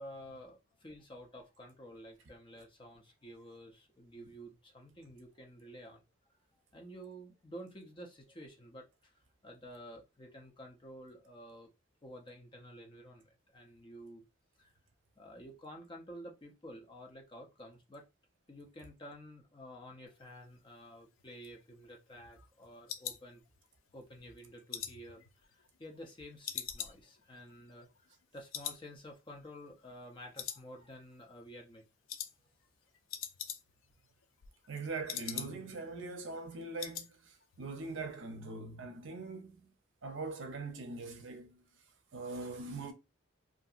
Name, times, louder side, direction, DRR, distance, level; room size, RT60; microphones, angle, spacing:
voice 1, 0.0-6.0 6.7-9.1 9.4-11.7 12.0-14.3 14.6-14.7 15.2-18.0 18.5-23.4 23.9-31.8, equal, 25° left, 0.5 m, -51 dB
sound 1, 21.2-23.9 24.3-26.1 26.4-28.3 28.5-28.9 29.1-29.2 29.7-30.1 30.4-31.1 31.4-31.7 32.1-32.3 32.6-32.7 32.9-33.9 34.2-35.8 36.1-36.2 36.5-37.1 37.4-37.7 38.0-38.1, left 9 dB, 85° left, 0.4 m, -43 dB
voice 2, 34.7-39.7 40.0-41.6 42.1-42.9, right 3 dB, 75° right, 0.6 m, -42 dB
2.7 x 2.5 x 2.4 m
head